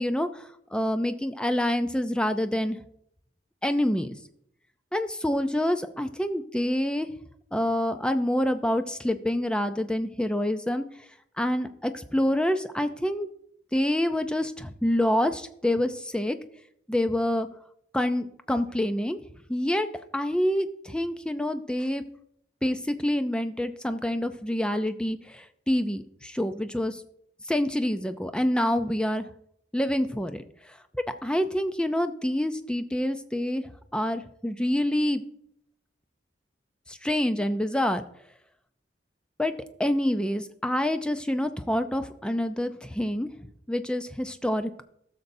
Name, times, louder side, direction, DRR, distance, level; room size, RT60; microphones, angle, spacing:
voice 1, 0.0-2.8 3.6-4.2 4.9-7.1 7.5-10.8 11.4-13.3 13.7-16.4 16.9-17.5 17.9-19.2 19.5-19.9 20.1-22.0 22.6-27.0 27.5-29.3 29.7-30.4 31.2-33.6 33.9-35.2 36.9-38.0 39.4-39.5 39.8-43.3 43.7-44.8, left 1 dB, 5° left, 9 dB, 0.4 m, -27 dB
15.5 x 6.7 x 2.7 m, 0.71 s
head